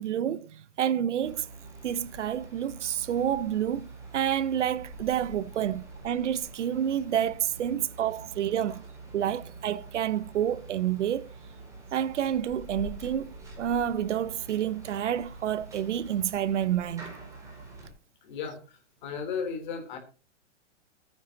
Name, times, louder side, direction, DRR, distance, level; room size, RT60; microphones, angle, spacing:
voice 1, 0.0-1.5 1.8-8.8 9.1-11.3 11.9-17.1, right 10 dB, 75° right, 1.0 m, -29 dB
sound 1, 1.2-17.9, right 2 dB, 10° right, 4.2 m, -46 dB
voice 2, 8.2-8.6 11.7-11.8 18.2-20.0, left 6 dB, 40° left, 3.7 m, -36 dB
20.5 x 9.4 x 2.9 m
hypercardioid pair, 170°, 36 cm